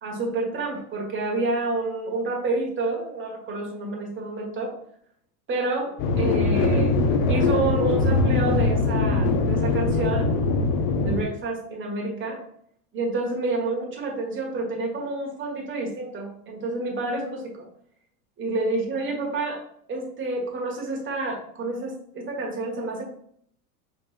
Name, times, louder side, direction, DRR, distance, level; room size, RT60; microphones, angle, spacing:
voice 1, 0.0-4.7 5.5-7.0 7.3-10.4 11.0-12.4 12.9-17.6 18.4-19.6 19.9-23.0, right 2 dB, 25° right, -1 dB, 1.6 m, -29 dB
sound 1, 6.0-11.2, left 3 dB, 55° left, 0.9 m, -22 dB
4.4 x 4.2 x 2.5 m, 0.65 s
supercardioid pair, 115°, 45 cm